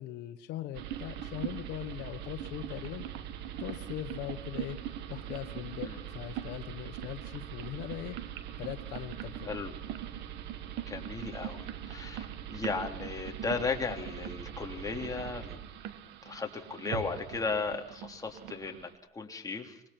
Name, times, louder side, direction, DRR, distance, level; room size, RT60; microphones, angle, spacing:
voice 1, 0.0-3.0 3.6-8.2 8.6-9.5, left 13 dB, 85° left, 10 dB, 1.2 m, -40 dB
sound 1, 0.7-18.9, right 10 dB, 85° right, 1.8 m, -41 dB
voice 2, 10.9-15.6 16.2-19.8, left 4 dB, 20° left, 2 dB, 3.4 m, -36 dB
25.5 x 21.0 x 6.0 m, 0.74 s
cardioid pair, 110°, 17 cm